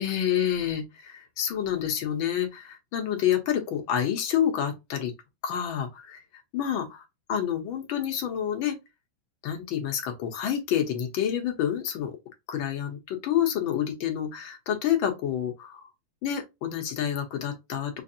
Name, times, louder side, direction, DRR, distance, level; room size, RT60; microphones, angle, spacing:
voice 1, 0.0-5.1 5.4-6.2 6.5-6.9 7.3-8.8 9.4-12.2 12.5-15.9 16.2-18.0, left 10 dB, 85° left, 1.8 m, -28 dB
5.6 x 2.7 x 2.5 m
omnidirectional pair, 2.1 m